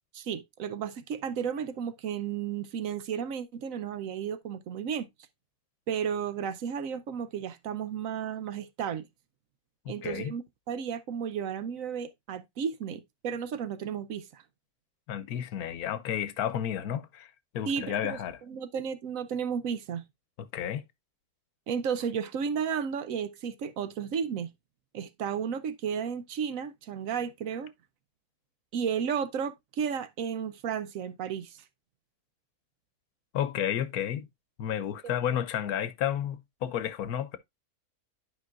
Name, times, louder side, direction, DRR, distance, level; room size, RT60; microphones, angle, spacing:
voice 1, 0.1-5.1 5.9-9.1 9.9-14.4 17.7-18.2 18.5-20.0 21.7-24.5 24.9-27.7 28.7-31.6, right 7 dB, 65° right, 1.0 m, -33 dB
voice 2, 9.8-10.3 15.1-18.4 20.4-20.8 33.3-34.3 34.6-37.4, left 10 dB, 75° left, 1.2 m, -32 dB
11.0 x 5.3 x 2.4 m
omnidirectional pair, 1.6 m